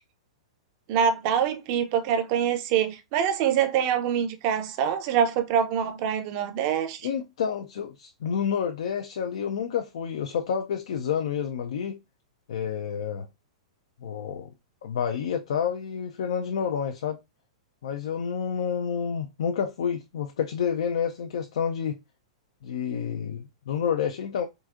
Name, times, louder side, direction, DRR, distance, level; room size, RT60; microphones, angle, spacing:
voice 1, 0.9-7.1, right 8 dB, 45° right, 0.6 m, -25 dB
voice 2, 7.0-12.0 12.5-13.3 14.0-14.5 14.8-17.2 17.8-22.0 22.6-24.4, left 7 dB, 65° left, 0.4 m, -29 dB
3.8 x 2.4 x 2.4 m
figure-of-eight pair, 105°, 3 cm